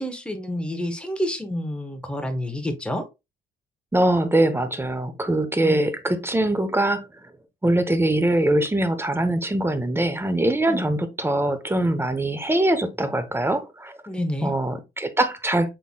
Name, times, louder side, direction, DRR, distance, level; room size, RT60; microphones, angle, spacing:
voice 1, 0.0-3.0 5.6-5.8 10.7-10.9 14.1-14.5, equal, 5° left, 1.1 m, -28 dB
voice 2, 3.9-7.1 7.6-14.0 14.4-15.7, right 1 dB, 10° right, 0.8 m, -22 dB
5.5 x 3.8 x 2.2 m
cardioid pair, 90°, 20 cm